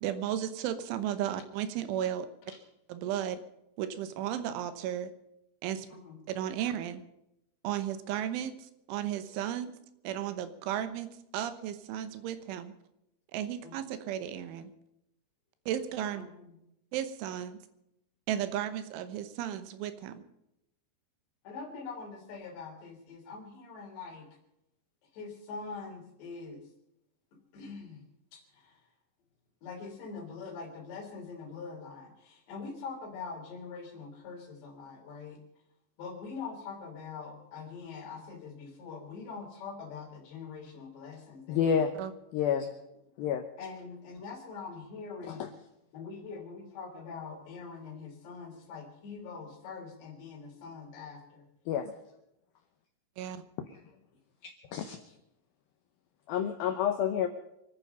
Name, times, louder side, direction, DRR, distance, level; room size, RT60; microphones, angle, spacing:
voice 1, 0.0-2.3 2.9-3.4 3.8-5.1 5.6-5.9 6.3-7.0 7.6-9.7 10.1-12.7 13.3-14.7 15.7-16.2 16.9-17.6 18.3-20.2 42.0-42.1 53.2-53.4, right 10 dB, 85° right, 11 dB, 3.5 m, -34 dB
voice 2, 5.9-6.2 13.6-13.8 16.1-16.5 21.4-24.3 25.1-26.6 27.5-28.0 28.3-28.8 29.6-35.4 36.0-41.9 43.6-45.5 45.9-51.4, left 5 dB, 65° left, 1 dB, 5.1 m, -43 dB
voice 3, 41.5-41.9 42.3-42.7 43.2-43.4 45.3-45.5 51.7-51.9 54.4-55.0 56.3-57.3, left 8 dB, 85° left, 7 dB, 2.1 m, -29 dB
26.0 x 9.5 x 5.5 m, 0.85 s
omnidirectional pair, 5.5 m